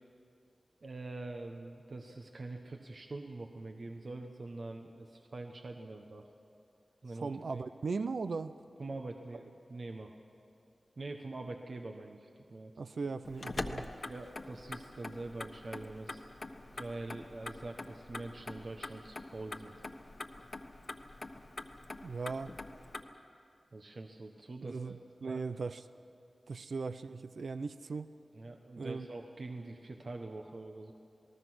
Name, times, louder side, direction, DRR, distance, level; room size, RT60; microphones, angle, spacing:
voice 1, 0.8-6.3 7.0-7.6 8.8-10.1 11.0-12.7 14.0-16.2 16.7-19.8 23.7-25.0 25.3-25.4 28.3-30.9, right 2 dB, 70° right, 3 dB, 1.3 m, -44 dB
voice 2, 7.2-8.6 12.8-13.9 22.0-22.5 24.6-25.8 26.5-28.1 28.8-29.1, right 4 dB, 85° right, 12 dB, 0.6 m, -38 dB
Motor vehicle (road), 13.2-23.0, left 2 dB, 60° left, 1.3 m, -44 dB
28.0 x 19.0 x 6.3 m, 2.5 s
cardioid pair, 45°, 0 cm